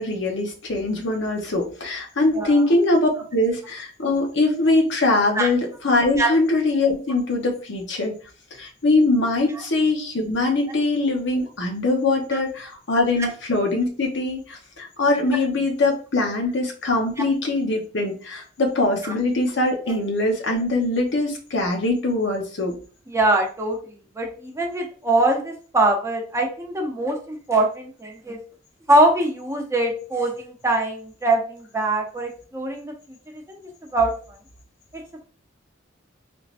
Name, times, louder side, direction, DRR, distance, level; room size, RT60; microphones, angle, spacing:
voice 1, 0.0-8.2 8.5-22.8, left 2 dB, 65° left, 2 dB, 0.9 m, -22 dB
voice 2, 23.1-23.8 24.2-28.4 28.9-32.9 33.3-33.6 33.9-34.1, right 2 dB, 15° right, 1 dB, 0.7 m, -22 dB
3.5 x 3.1 x 2.5 m, 0.39 s
head